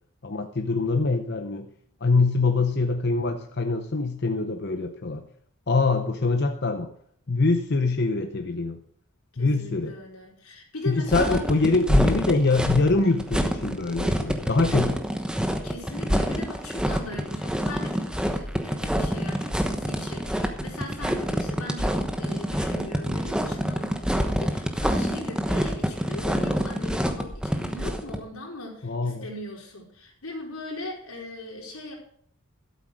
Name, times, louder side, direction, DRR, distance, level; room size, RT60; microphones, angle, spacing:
voice 1, 0.2-1.7 2.0-5.2 5.7-6.9 7.3-8.8 9.4-9.9 10.9-15.0 28.8-29.3, left 3 dB, 50° left, 6 dB, 0.7 m, -24 dB
voice 2, 9.3-11.4 15.6-31.9, left 1 dB, 90° left, -2 dB, 4.5 m, -39 dB
sound 1, 11.1-28.2, equal, 5° right, 1.0 m, -26 dB
12.5 x 8.3 x 6.3 m, 0.62 s
head